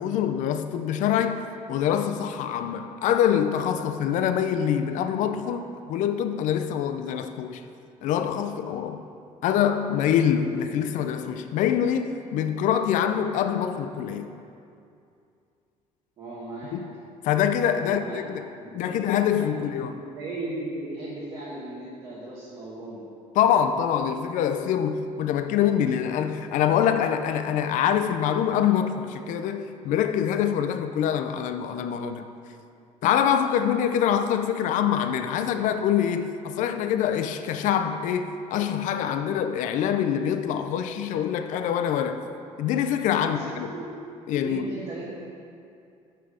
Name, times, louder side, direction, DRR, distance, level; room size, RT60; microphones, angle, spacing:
voice 1, 0.0-1.4 1.7-7.6 8.0-9.0 9.4-14.3 16.7-16.9 17.2-18.5 18.7-20.0 23.4-32.3 33.0-42.2 42.6-43.7 44.3-44.7, left 9 dB, 70° left, 0.4 m, -25 dB
voice 2, 16.2-16.8 17.8-18.2 18.6-19.0 19.3-23.0 43.2-43.8 44.4-45.2, right 2 dB, 45° right, 1.2 m, -37 dB
5.9 x 5.6 x 4.9 m
cardioid pair, 120°, 14 cm